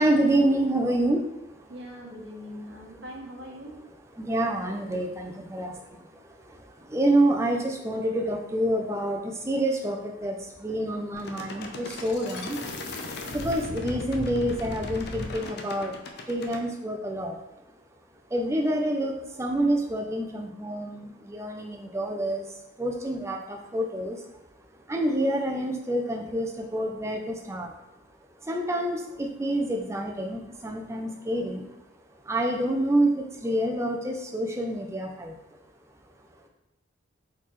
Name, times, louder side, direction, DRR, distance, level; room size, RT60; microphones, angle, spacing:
voice 1, 0.0-1.6 4.2-12.6 13.3-15.9 16.3-17.4 18.3-22.4 22.8-24.2 24.9-27.7 28.4-31.7 32.2-35.4, right 1 dB, 15° right, 1 dB, 0.4 m, -27 dB
voice 2, 1.7-3.8, equal, 60° right, -2 dB, 1.0 m, -41 dB
sound 1, 11.1-16.6, left 2 dB, 55° left, 0.5 m, -36 dB
4.1 x 4.0 x 3.1 m, 0.95 s
head